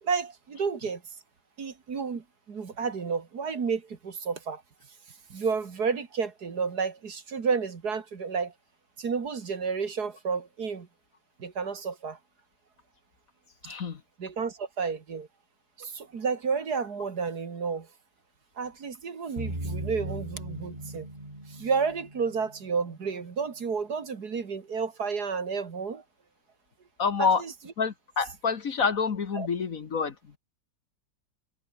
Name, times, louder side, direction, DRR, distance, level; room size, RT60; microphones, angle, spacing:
voice 1, 0.0-1.0 1.6-4.6 5.3-8.5 9.0-10.9 11.4-12.2 14.2-15.3 15.8-17.9 18.6-21.1 21.5-26.0 27.2-27.5 29.4-29.5, right 5 dB, 60° right, 2.5 m, -31 dB
voice 2, 13.6-14.0 27.0-27.4 27.8-30.4, left 5 dB, 50° left, 1.7 m, -27 dB
sound 1, 19.4-23.1, right 1 dB, 20° right, 6.2 m, -38 dB
omnidirectional pair, 2.0 m